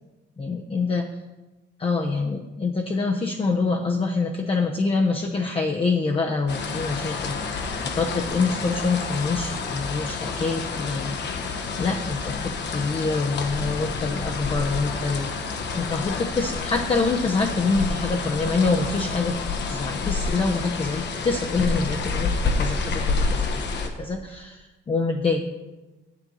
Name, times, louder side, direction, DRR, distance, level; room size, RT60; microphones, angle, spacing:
voice 1, 0.4-1.1 1.8-11.2 11.8-19.4 19.7-25.5, left 4 dB, 30° left, 2 dB, 0.6 m, -26 dB
sound 1, 6.5-23.9, left 4 dB, 60° left, 1.0 m, -29 dB
7.5 x 7.4 x 3.9 m, 1.2 s
cardioid pair, 90°, 20 cm